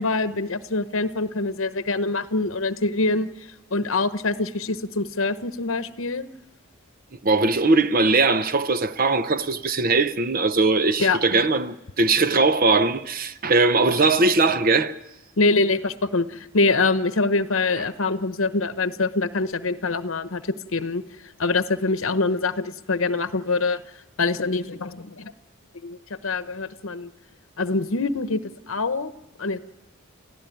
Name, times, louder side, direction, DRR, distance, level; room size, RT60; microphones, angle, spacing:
voice 1, 0.0-3.3 3.7-6.2 11.0-11.4 15.4-23.8 24.2-25.3 25.8-27.1 27.6-29.1 29.4-29.6, left 3 dB, 70° left, 0.9 m, -24 dB
voice 2, 7.2-14.9, right 3 dB, 40° right, 0.7 m, -20 dB
30.0 x 15.0 x 9.2 m
head